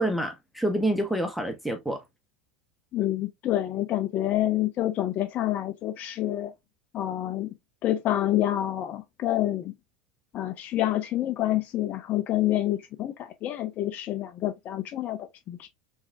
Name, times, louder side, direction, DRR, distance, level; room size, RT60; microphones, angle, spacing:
voice 1, 0.0-2.0, right 1 dB, ahead, 0.6 m, -27 dB
voice 2, 2.9-6.5 6.9-7.5 7.8-9.7 10.3-15.2 15.5-15.7, left 13 dB, 45° left, 0.5 m, -27 dB
3.5 x 3.1 x 2.5 m
hypercardioid pair, 85°, 4 cm